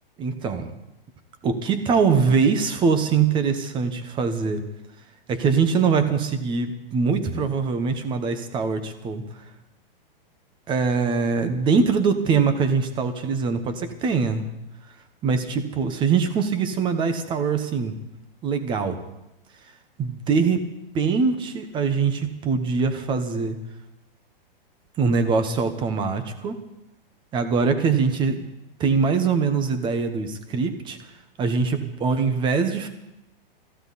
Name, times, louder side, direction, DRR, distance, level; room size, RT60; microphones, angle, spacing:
voice 1, 0.2-0.7 1.4-4.6 5.3-9.2 10.7-14.5 15.2-17.9 18.4-19.0 20.0-20.7 20.9-23.6 25.0-26.6 27.3-28.5 28.8-31.0 31.4-32.9, right 5 dB, 15° right, 9 dB, 1.2 m, -23 dB
23.0 x 15.0 x 4.2 m, 0.89 s
hypercardioid pair, 160°, 29 cm